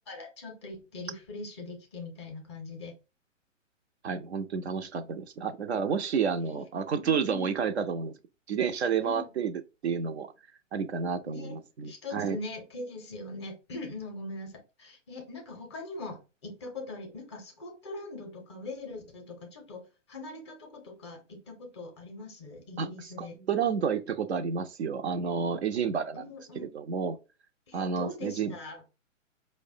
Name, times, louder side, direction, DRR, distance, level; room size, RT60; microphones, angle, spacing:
voice 1, 0.1-2.9 6.4-6.7 7.0-7.6 9.0-9.3 11.3-23.4 26.1-26.7 27.7-28.9, left 2 dB, 20° left, 0.5 m, -42 dB
voice 2, 4.0-8.2 8.5-9.5 9.8-10.3 10.7-12.4 22.8-22.9 23.2-26.2 26.6-27.2 27.7-28.6, right 6 dB, 55° right, 0.4 m, -30 dB
4.6 x 2.0 x 2.5 m
figure-of-eight pair, 125°, 39 cm